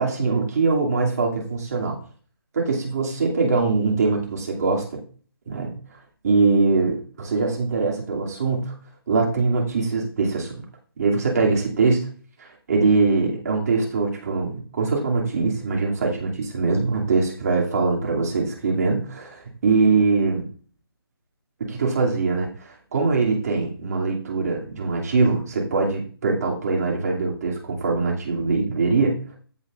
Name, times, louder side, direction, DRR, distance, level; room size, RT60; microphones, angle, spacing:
voice 1, 0.0-2.0 2.5-5.0 5.5-5.7 6.2-8.7 9.1-10.5 11.0-12.0 12.4-20.5 21.6-29.4, right 4 dB, 40° right, -1 dB, 2.5 m, -22 dB
15.5 x 6.2 x 2.5 m, 0.41 s
hypercardioid pair, 165°, 13 cm